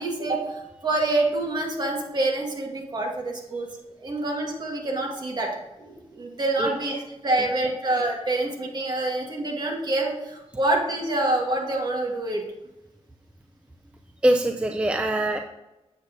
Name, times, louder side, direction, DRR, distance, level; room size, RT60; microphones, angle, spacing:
voice 1, 0.0-3.7 4.0-12.4, right 2 dB, 40° right, 0 dB, 1.6 m, -26 dB
voice 2, 14.2-15.4, right 1 dB, 10° right, 4 dB, 0.4 m, -22 dB
8.1 x 7.6 x 2.6 m, 0.99 s
wide cardioid pair, 135°, 11 cm